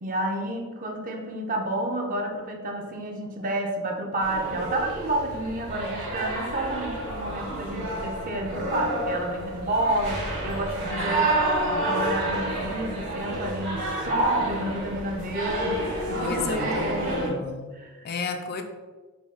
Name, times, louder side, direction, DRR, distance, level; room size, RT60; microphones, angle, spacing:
voice 1, 0.0-11.4 11.6-17.5 17.7-18.0, right 1 dB, 40° right, 1 dB, 0.6 m, -30 dB
sound 1, 4.2-17.3, right 1 dB, 65° right, 1.3 m, -30 dB
voice 2, 11.0-11.8 16.2-17.7 18.0-18.6, left 4 dB, 45° left, 5 dB, 0.4 m, -33 dB
4.8 x 2.3 x 3.7 m, 1.3 s
head